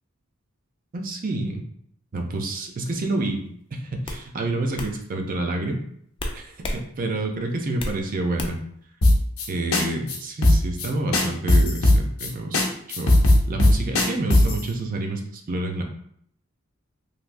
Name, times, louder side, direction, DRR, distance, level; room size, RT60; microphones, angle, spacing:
voice 1, 0.9-1.6 2.1-3.4 3.8-5.8 6.3-8.6 9.5-12.7 13.0-13.2 13.5-15.8, right 2 dB, 40° right, 3 dB, 0.5 m, -28 dB
sound 1, 3.3-3.5 4.0-4.2 4.8-4.9 6.2-6.8 7.2-8.0 8.4-8.7, left 1 dB, 25° left, 0.4 m, -31 dB
sound 2, 9.0-9.5 9.7-9.8 10.1-10.2 10.4-10.9 11.1-12.3 12.5-12.7 12.9-14.6, left 1 dB, 85° left, 0.7 m, -17 dB
3.3 x 2.7 x 2.5 m, 0.67 s
head